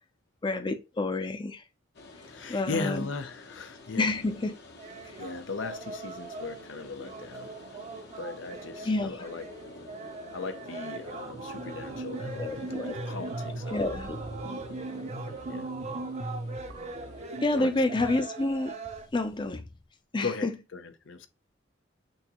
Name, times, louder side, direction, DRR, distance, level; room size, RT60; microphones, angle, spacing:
voice 1, 0.4-1.6 2.5-3.1 4.0-4.5 8.8-9.1 12.4-13.1 13.7-14.2 17.4-18.7 19.1-19.6 20.1-20.5, left 2 dB, 25° left, 0.5 m, -28 dB
sound 1, 1.9-19.6, left 2 dB, 60° left, 0.9 m, -49 dB
voice 2, 2.2-4.1 5.2-7.5 8.2-9.4 10.3-14.2 15.5-15.7 17.6-17.7 20.2-21.3, left 4 dB, 85° left, 0.6 m, -38 dB
sound 2, 4.8-19.1, right 3 dB, 35° right, 0.6 m, -42 dB
sound 3, 11.1-18.2, right 2 dB, 75° right, 0.7 m, -39 dB
6.2 x 2.8 x 2.9 m
head